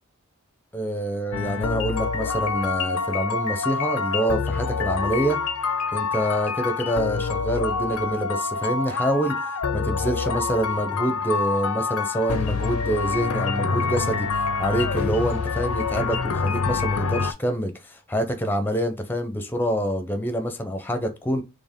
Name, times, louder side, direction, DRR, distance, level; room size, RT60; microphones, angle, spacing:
voice 1, 0.7-5.4 5.9-21.4, equal, 10° left, 0.6 m, -26 dB
sound 1, 1.3-17.3, left 4 dB, 80° left, 0.6 m, -26 dB
4.3 x 3.3 x 3.6 m
head